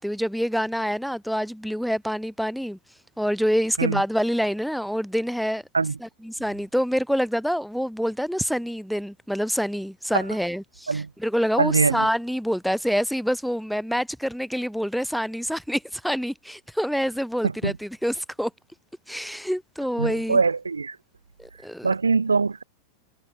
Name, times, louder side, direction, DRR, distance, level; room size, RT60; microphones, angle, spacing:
voice 1, 0.0-2.8 3.2-5.6 6.0-10.9 11.2-18.5 19.1-20.4 21.4-21.9, equal, ahead, 0.8 m, -26 dB
voice 2, 11.6-12.1 17.4-17.8 20.0-21.0 21.8-22.6, right 4 dB, 75° right, 1.1 m, -23 dB
figure-of-eight pair, 90°, 0 cm